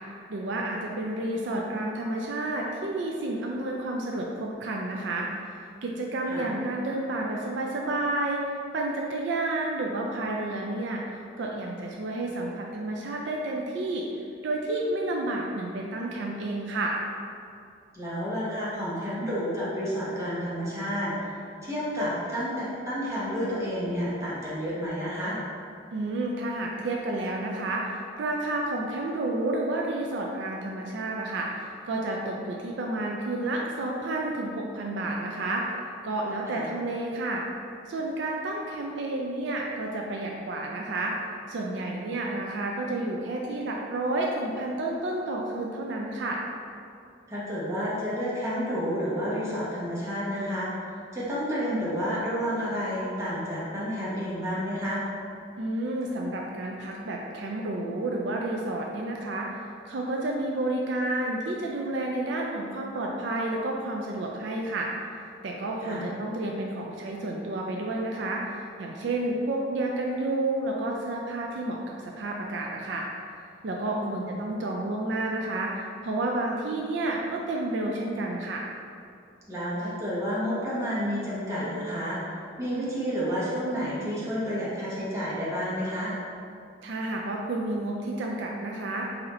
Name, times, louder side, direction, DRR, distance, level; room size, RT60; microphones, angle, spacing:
voice 1, 0.3-5.3 5.8-8.4 8.7-11.0 11.4-14.0 14.4-17.0 25.9-35.6 36.0-37.4 37.9-41.1 41.5-46.4 55.6-59.5 59.8-64.9 65.4-71.8 72.2-73.1 73.6-78.6 86.8-89.1, right 2 dB, 70° right, -1 dB, 0.4 m, -30 dB
voice 2, 17.9-21.3 21.6-25.4 36.5-36.6 47.3-50.7 51.1-55.0 65.8-66.1 74.0-74.3 79.5-82.2 82.6-86.1, equal, 15° right, -9 dB, 1.1 m, -30 dB
3.9 x 2.8 x 4.2 m, 2.4 s
head